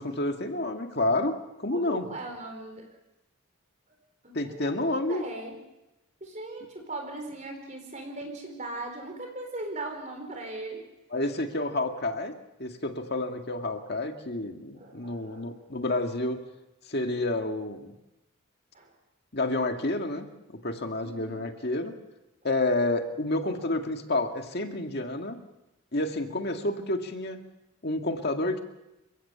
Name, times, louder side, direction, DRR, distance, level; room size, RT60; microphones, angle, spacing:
voice 1, 0.0-2.1 4.3-5.2 11.1-12.3 12.6-16.4 16.9-17.9 19.3-21.9 22.4-25.4 25.9-27.4 27.8-28.6, left 2 dB, 50° left, 4 dB, 2.1 m, -29 dB
voice 2, 1.7-2.8 4.2-5.6 6.2-10.8 14.7-15.6 18.7-18.9 21.0-21.4, right 2 dB, 35° right, 3 dB, 4.3 m, -39 dB
29.5 x 16.5 x 7.1 m, 0.98 s
head